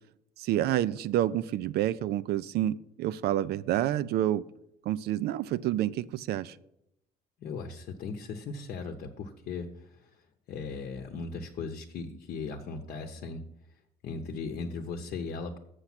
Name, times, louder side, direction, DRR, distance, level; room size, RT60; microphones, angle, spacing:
voice 1, 0.4-4.4 4.8-6.6, right 13 dB, 70° right, 16 dB, 0.5 m, -28 dB
voice 2, 7.4-10.2 10.5-13.5 14.0-15.6, left 4 dB, 60° left, 5 dB, 0.8 m, -38 dB
7.1 x 6.6 x 5.9 m, 0.79 s
cardioid pair, 110°, 17 cm